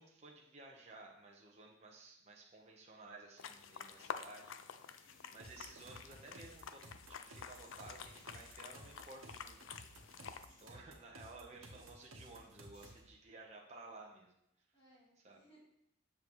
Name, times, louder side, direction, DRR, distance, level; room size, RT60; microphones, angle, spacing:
voice 1, 0.0-6.9 7.2-9.6 10.1-14.3 15.2-15.4, right 2 dB, 35° right, -1 dB, 1.0 m, -56 dB
sound 1, 3.4-10.5, left 6 dB, 75° left, 0.5 m, -50 dB
sound 2, 4.6-13.7 13.9-14.3, left 1 dB, 45° left, 2.6 m, -70 dB
voice 2, 5.0-5.5 10.4-10.7 14.7-15.6, right 1 dB, 25° left, -8 dB, 3.3 m, -68 dB
sound 3, 5.4-13.1, right 1 dB, 90° right, 1.2 m, -56 dB
7.5 x 7.1 x 3.1 m, 0.78 s
head